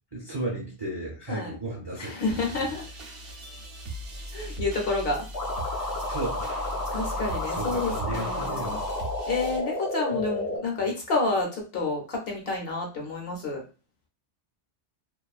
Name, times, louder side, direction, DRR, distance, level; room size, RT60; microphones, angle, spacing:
voice 1, 0.1-2.6 6.1-7.1 7.5-8.8, right 2 dB, 25° right, -5 dB, 0.6 m, -35 dB
voice 2, 2.0-2.9 4.3-5.3 5.8-5.9 6.9-8.8 9.3-13.6, left 3 dB, 60° left, 0 dB, 0.8 m, -29 dB
sound 1, 2.3-9.6, equal, 60° right, 0.8 m, -38 dB
sound 2, 5.3-10.6, left 2 dB, 30° left, 0.3 m, -31 dB
2.5 x 2.3 x 2.4 m, 0.34 s
omnidirectional pair, 1.2 m